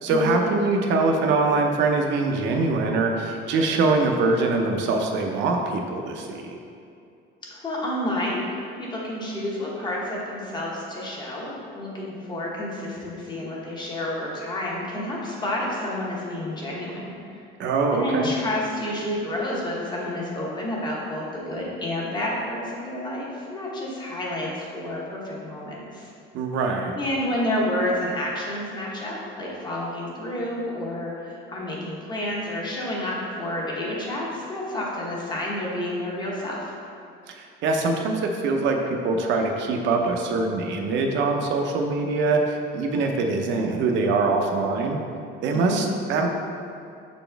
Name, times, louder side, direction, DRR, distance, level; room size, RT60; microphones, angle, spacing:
voice 1, 0.0-6.5 17.6-18.3 26.3-26.9 37.3-45.0 45.4-46.3, right 3 dB, 65° right, 2 dB, 0.7 m, -23 dB
voice 2, 7.5-17.4 17.9-26.1 26.9-36.7 45.5-45.8, left 1 dB, 20° left, -4 dB, 1.0 m, -30 dB
6.8 x 4.1 x 3.4 m, 2.5 s
cardioid pair, 175°, 20 cm